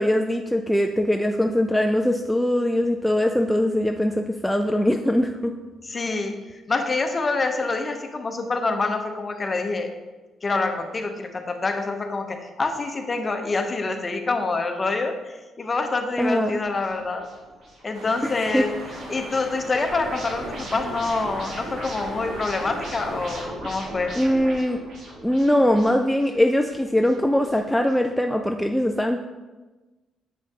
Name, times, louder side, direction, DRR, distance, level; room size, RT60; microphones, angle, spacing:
voice 1, 0.0-5.5 16.2-16.6 18.2-18.7 24.2-24.8 25.2-29.2, left 1 dB, 5° left, 4 dB, 0.3 m, -22 dB
voice 2, 5.8-6.4 6.7-9.9 10.4-17.3 17.8-18.7 19.1-24.1, left 3 dB, 30° left, 5 dB, 0.8 m, -26 dB
sound 1, 16.4-27.9, right 1 dB, 65° right, 2.1 m, -39 dB
sound 2, 17.9-23.4, right 2 dB, 85° right, 1.4 m, -40 dB
7.3 x 5.6 x 2.9 m, 1.2 s
cardioid pair, 90°, 0 cm